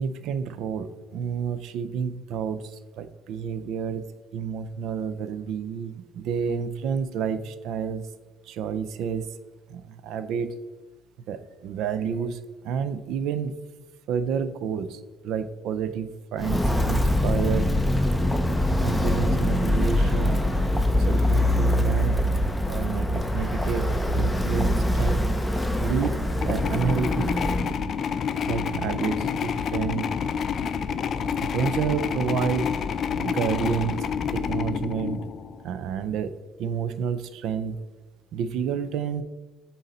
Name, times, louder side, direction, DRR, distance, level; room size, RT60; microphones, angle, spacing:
voice 1, 0.0-8.1 8.4-9.4 9.7-10.5 11.3-13.5 14.1-17.7 18.8-22.2 22.6-23.9 24.1-25.3 25.8-27.9 28.5-30.1 31.4-32.8 33.1-34.1 34.3-35.2 35.6-36.3 36.6-37.8 38.3-39.2, right 7 dB, 80° right, 12 dB, 0.4 m, -30 dB
Walk footsteps, 16.4-27.7, left 1 dB, 5° left, 0.7 m, -23 dB
sound 1, 26.3-35.7, left 7 dB, 55° left, 0.4 m, -28 dB
8.1 x 3.9 x 4.0 m, 1.2 s
cardioid pair, 100°, 0 cm